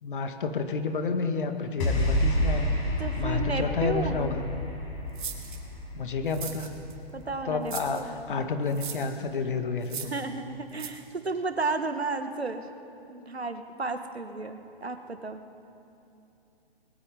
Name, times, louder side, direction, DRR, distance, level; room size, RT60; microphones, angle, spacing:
voice 1, 0.0-2.7 3.2-4.4 5.9-6.7 7.4-10.1, left 4 dB, 55° left, 6 dB, 2.2 m, -30 dB
sound 1, 1.8-8.2, equal, 30° left, 7.3 m, -30 dB
voice 2, 3.0-4.3 7.1-8.2 10.1-12.7 13.1-15.4, right 3 dB, 80° right, 8 dB, 1.8 m, -33 dB
sound 2, 5.2-5.6 6.3-6.9 7.7-8.0 8.7-9.1 9.8-10.2 10.8-10.9, right 7 dB, 50° right, 2.8 m, -38 dB
30.0 x 21.0 x 5.3 m, 2.8 s
figure-of-eight pair, 125°, 31 cm